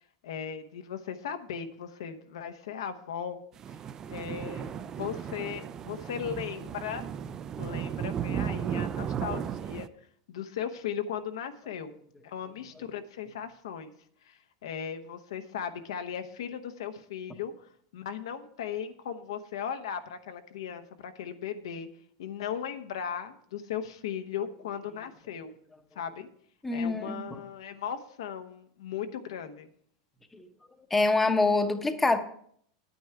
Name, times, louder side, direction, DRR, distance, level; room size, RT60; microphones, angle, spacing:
voice 1, 0.2-3.4 4.0-7.1 7.6-9.9 10.3-11.9 12.2-13.9 14.2-21.9 22.2-25.5 25.9-26.3 26.7-29.7, left 8 dB, 85° left, 8 dB, 1.0 m, -37 dB
sound 1, 3.6-9.9, right 8 dB, 25° right, 0.4 m, -35 dB
voice 2, 26.6-27.2 30.3-30.5 30.9-32.2, left 3 dB, 10° left, 7 dB, 0.8 m, -25 dB
9.9 x 9.3 x 4.7 m, 0.63 s
supercardioid pair, 150°, 3 cm